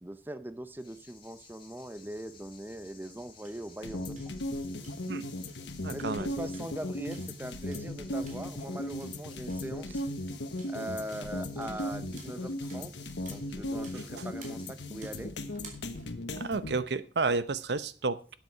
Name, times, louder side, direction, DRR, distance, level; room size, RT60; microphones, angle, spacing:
voice 1, 0.0-4.2 5.9-10.0 10.6-15.4, right 1 dB, 10° right, 11 dB, 0.6 m, -41 dB
sound 1, 0.8-15.3, left 5 dB, 30° left, 2.6 m, -58 dB
sound 2, 2.0-16.7, right 3 dB, 45° right, 2.9 m, -57 dB
sound 3, 3.8-16.7, left 1 dB, 85° left, 1.2 m, -37 dB
voice 2, 5.8-6.3 13.9-14.0 16.4-18.3, right 3 dB, 75° right, 14 dB, 0.8 m, -31 dB
12.0 x 8.1 x 4.8 m, 0.38 s
head